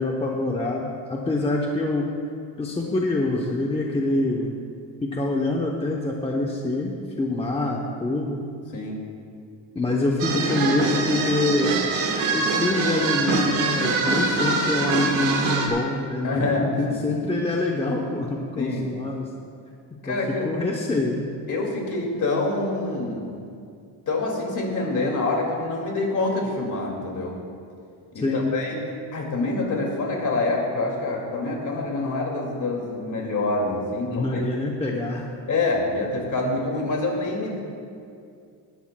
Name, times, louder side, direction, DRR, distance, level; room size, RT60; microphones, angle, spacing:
voice 1, 0.0-2.0 2.6-4.5 5.0-8.4 9.7-11.7 12.3-19.2 20.0-20.2 20.4-21.3 28.2-28.5 34.1-35.3, left 2 dB, 15° left, -1 dB, 0.7 m, -25 dB
voice 2, 8.7-9.1 16.2-17.0 18.6-18.9 20.0-20.5 21.5-23.4 24.1-27.4 28.1-34.4 35.5-37.6, left 2 dB, 40° left, 0 dB, 2.2 m, -26 dB
sound 1, 10.2-15.7, right 3 dB, 85° right, 1.6 m, -24 dB
19.0 x 11.5 x 2.2 m, 2.3 s
cardioid pair, 150°, 46 cm